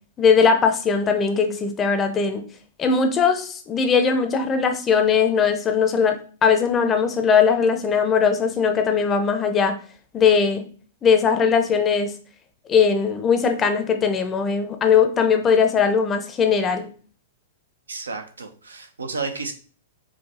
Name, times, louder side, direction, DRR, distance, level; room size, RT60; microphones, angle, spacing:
voice 1, 0.2-2.4 2.8-9.7 10.1-10.6 11.0-12.1 12.7-16.9, left 6 dB, 25° left, 7 dB, 0.6 m, -19 dB
voice 2, 17.9-19.5, right 4 dB, 85° right, 5 dB, 0.6 m, -31 dB
4.6 x 2.2 x 2.8 m, 0.41 s
figure-of-eight pair, 105°, 0 cm